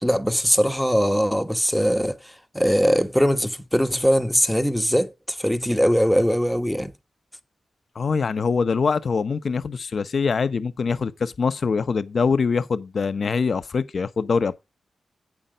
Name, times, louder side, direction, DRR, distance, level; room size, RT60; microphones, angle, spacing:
voice 1, 0.0-2.2 2.5-6.9, equal, ahead, 1.2 m, -21 dB
voice 2, 8.0-14.6, left 5 dB, 65° left, 0.8 m, -23 dB
8.7 x 5.6 x 5.1 m
cardioid pair, 55°, 0 cm